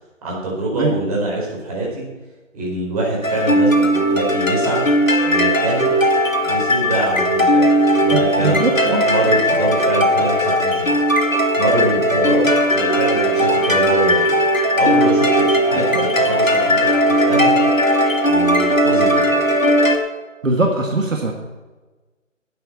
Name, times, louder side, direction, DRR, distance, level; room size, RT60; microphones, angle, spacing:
voice 1, 0.2-2.1 2.5-4.8 5.2-5.9 6.4-11.0 11.6-14.3 14.7-17.5 18.3-19.5, right 2 dB, 30° right, -4 dB, 4.6 m, -24 dB
sound 1, 3.2-20.0, equal, 90° left, 2.4 m, -17 dB
voice 2, 8.1-9.0 15.7-16.0 20.4-21.3, right 2 dB, 75° right, 2 dB, 2.1 m, -21 dB
12.5 x 8.3 x 5.9 m, 1.2 s
figure-of-eight pair, 160°, 39 cm